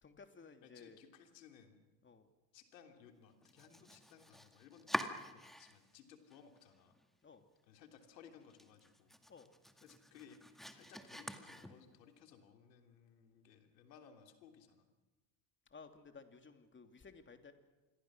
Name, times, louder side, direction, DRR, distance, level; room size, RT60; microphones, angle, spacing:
voice 1, 0.0-1.0 2.0-2.3 7.2-7.4 9.3-9.5 15.7-17.5, left 5 dB, 25° left, 6 dB, 2.9 m, -57 dB
voice 2, 0.6-1.8 2.5-7.0 7.7-9.1 9.8-14.9, left 7 dB, 80° left, 5 dB, 3.4 m, -61 dB
Domestic sounds home sounds, 3.4-6.0 6.3-7.1 7.4-7.5 7.9-8.0 8.4-12.1, equal, ahead, 2.0 m, -46 dB
27.5 x 22.0 x 6.3 m, 1.1 s
hypercardioid pair, 80°, 50 cm